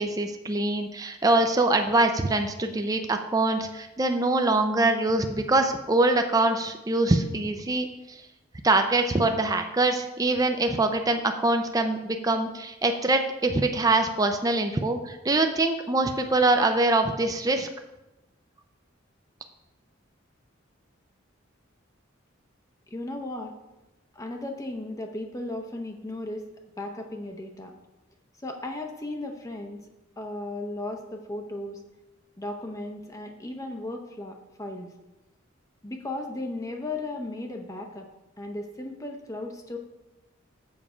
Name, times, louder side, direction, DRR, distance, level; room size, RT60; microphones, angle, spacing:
voice 1, 0.0-8.2 8.6-17.7, right 2 dB, 20° right, 5 dB, 0.5 m, -24 dB
voice 2, 22.9-23.5 24.1-26.4 26.8-27.7 28.4-29.8 30.2-31.8 32.4-34.9 35.8-38.1 38.4-39.8, left 2 dB, 15° left, 2 dB, 0.7 m, -35 dB
7.2 x 6.9 x 4.9 m, 0.98 s
head